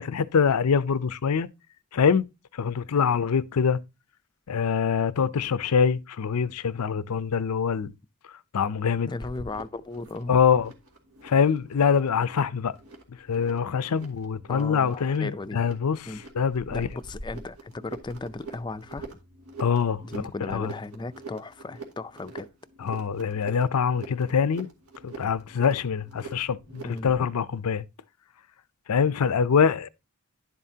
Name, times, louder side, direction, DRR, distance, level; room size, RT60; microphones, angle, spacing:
voice 1, 0.0-1.5 1.9-2.2 2.6-3.8 4.5-7.9 8.5-9.1 10.3-10.7 11.2-12.8 13.3-16.0 16.4-16.9 19.6-20.7 22.8-24.7 25.0-27.8 28.9-29.9, left 6 dB, 85° left, 0.5 m, -24 dB
voice 2, 9.1-10.3 14.5-15.7 16.1-16.2 16.7-19.1 20.0-22.5 26.8-27.3, left 3 dB, 20° left, 0.4 m, -36 dB
sound 1, 9.2-27.2, right 3 dB, 85° right, 2.1 m, -45 dB
11.0 x 7.4 x 2.8 m
head